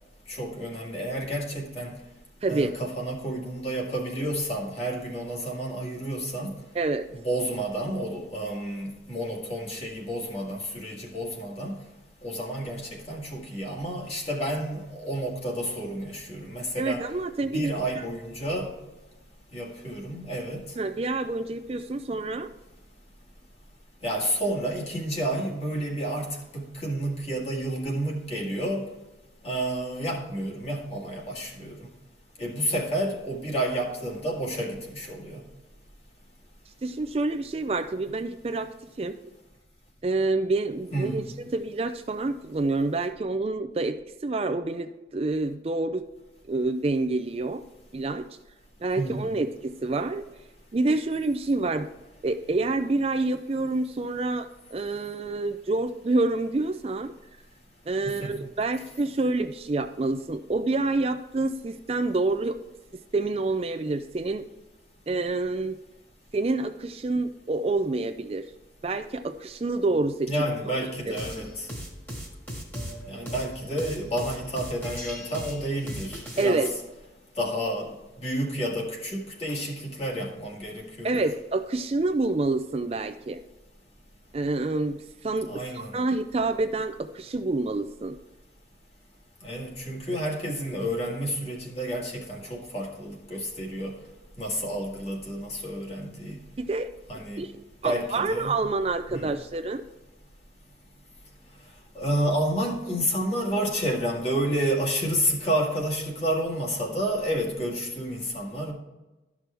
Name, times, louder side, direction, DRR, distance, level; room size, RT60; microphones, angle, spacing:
voice 1, 0.3-1.9 2.5-6.5 7.1-11.8 12.2-17.0 17.5-18.7 19.5-20.6 24.0-28.9 29.4-31.9 32.4-35.4 40.9-41.3 48.9-49.3 58.0-58.4 70.3-71.7 73.1-76.7 77.4-81.2 85.5-86.0 89.4-93.9 94.4-96.4 97.1-97.4 97.8-98.6 99.1-99.3 101.9-108.7, right 1 dB, 35° left, -1 dB, 1.8 m, -30 dB
voice 2, 2.4-2.7 6.7-7.1 16.8-18.0 20.8-22.5 36.8-38.7 39.0-39.2 40.0-41.2 41.5-46.1 46.5-47.6 47.9-48.3 48.8-50.3 50.7-51.9 52.2-57.1 57.9-62.6 63.1-64.5 65.1-65.8 66.3-68.4 68.8-70.3 70.8-71.2 76.4-76.7 81.0-83.4 84.3-88.2 96.6-96.9 97.4-97.5 97.8-99.8, right 2 dB, 35° right, 8 dB, 0.4 m, -27 dB
sound 1, 71.1-76.7, equal, 10° left, 1.7 m, -38 dB
12.5 x 5.9 x 3.4 m, 1.1 s
head